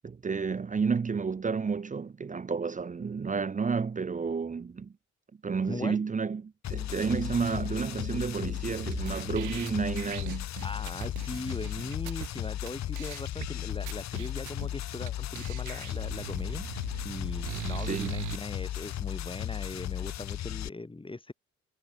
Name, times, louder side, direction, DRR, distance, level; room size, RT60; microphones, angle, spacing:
voice 1, 0.0-4.9 5.4-10.5 17.9-18.1, right 5 dB, 25° right, 0.8 m, -31 dB
voice 2, 5.7-6.0 10.6-16.7 17.0-21.3, left 2 dB, 15° left, 3.7 m, -39 dB
sound 1, 6.6-20.7, left 12 dB, 65° left, 1.0 m, -35 dB
sound 2, 8.8-12.3 12.7-12.8 12.9-13.5 13.9-14.7 15.1-15.2 15.3-18.4, right 16 dB, 80° right, 0.8 m, -40 dB
cardioid pair, 90°, 30 cm